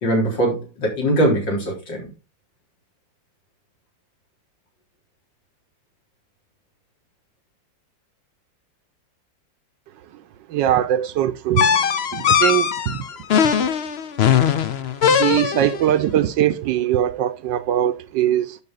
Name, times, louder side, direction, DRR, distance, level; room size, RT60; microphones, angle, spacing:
voice 1, 0.0-2.1, right 1 dB, 75° left, 4.7 m, -21 dB
voice 2, 10.5-11.7 12.1-13.0 13.4-13.5 15.1-18.6, right 11 dB, 75° right, 1.3 m, -21 dB
sound 1, 11.6-15.9, left 7 dB, 90° left, 0.5 m, -19 dB
11.0 x 5.8 x 4.0 m
omnidirectional pair, 2.1 m